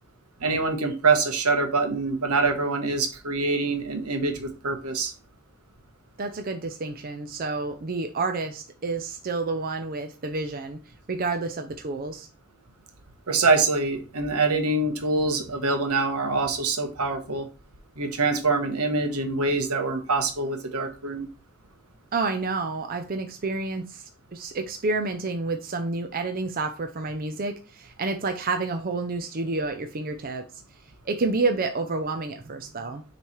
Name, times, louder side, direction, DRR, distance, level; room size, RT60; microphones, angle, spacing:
voice 1, 0.4-5.1 13.3-17.5 18.0-21.3, right 3 dB, 80° right, 6 dB, 1.2 m, -25 dB
voice 2, 6.2-10.8 11.1-12.3 22.1-24.0 24.3-30.4 31.1-33.0, right 3 dB, 40° right, 6 dB, 0.5 m, -29 dB
6.7 x 3.2 x 4.4 m, 0.34 s
head